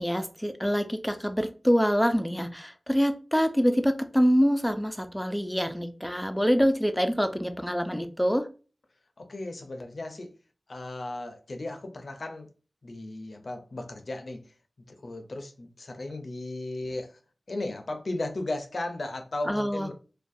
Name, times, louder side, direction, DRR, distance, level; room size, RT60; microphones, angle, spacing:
voice 1, 0.0-8.5 19.5-19.9, equal, 5° left, 0.3 m, -25 dB
voice 2, 9.2-10.3 10.7-12.5 12.8-14.4 14.9-17.1 17.5-19.9, left 2 dB, 70° left, 0.4 m, -35 dB
2.3 x 2.2 x 2.6 m
cardioid pair, 45°, 0 cm